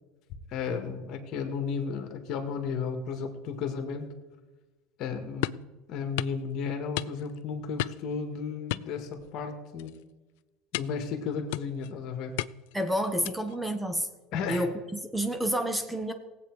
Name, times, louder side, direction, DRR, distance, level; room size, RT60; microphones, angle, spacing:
voice 1, 0.5-4.1 5.0-9.9 10.7-12.4 14.3-14.7, left 5 dB, 55° left, 5 dB, 1.9 m, -34 dB
sound 1, 5.4-5.7 6.2-6.4 7.0-7.4 7.8-8.1 8.7-9.5 9.8-10.0 10.7-11.1 11.5-11.9 12.4-12.8 13.2-13.6, left 19 dB, 75° left, 0.3 m, -34 dB
voice 2, 12.7-14.1 14.5-14.7 15.1-16.1, equal, 5° right, 7 dB, 1.2 m, -29 dB
17.5 x 8.2 x 4.8 m, 1.2 s
supercardioid pair, 100°, 0 cm